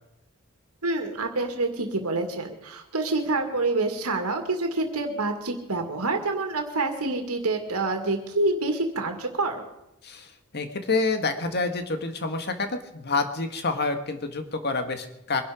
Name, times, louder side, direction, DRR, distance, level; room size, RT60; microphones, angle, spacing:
voice 1, 0.8-9.7, right 2 dB, 85° right, 4 dB, 2.2 m, -27 dB
voice 2, 10.0-15.4, left 3 dB, 50° left, 7 dB, 1.8 m, -28 dB
23.5 x 11.5 x 5.1 m, 0.86 s
head